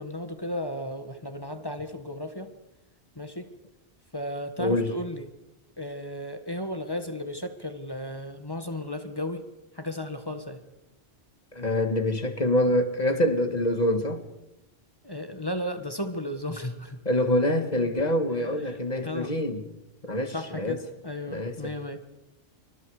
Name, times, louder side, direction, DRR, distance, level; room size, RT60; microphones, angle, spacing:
voice 1, 0.0-2.5 3.1-3.5 4.1-5.3 5.8-9.4 9.7-10.6 15.0-17.0 18.6-19.3 20.3-22.0, left 1 dB, 20° left, 1.6 m, -34 dB
voice 2, 4.6-4.9 11.5-14.2 17.1-19.6 20.0-20.8 21.3-21.7, left 1 dB, 35° left, 2.0 m, -25 dB
26.5 x 24.5 x 5.0 m
omnidirectional pair, 1.2 m